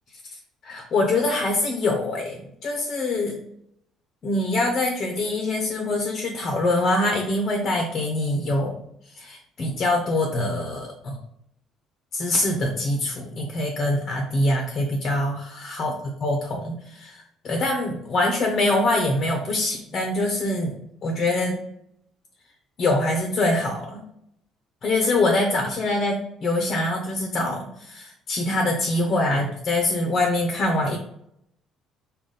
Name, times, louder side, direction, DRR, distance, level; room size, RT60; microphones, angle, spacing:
voice 1, 0.6-3.4 4.2-8.8 9.1-11.2 12.1-15.9 16.2-20.7 21.0-21.6 22.8-24.0 24.8-31.0, left 2 dB, 35° left, 2 dB, 0.6 m, -24 dB
5.0 x 2.2 x 3.8 m, 0.73 s
cardioid pair, 165°, 0 cm